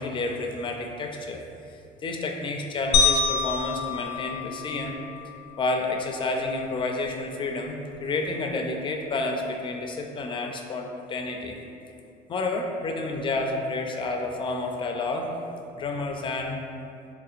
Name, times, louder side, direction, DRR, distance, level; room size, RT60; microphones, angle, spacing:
voice 1, 0.0-1.4 2.0-5.0 5.6-11.5 12.3-15.3 15.8-16.6, left 2 dB, 30° left, 2 dB, 0.4 m, -30 dB
sound 1, 2.9-5.3, left 5 dB, 85° left, 0.5 m, -25 dB
4.0 x 2.7 x 2.4 m, 2.6 s
cardioid pair, 110°, 17 cm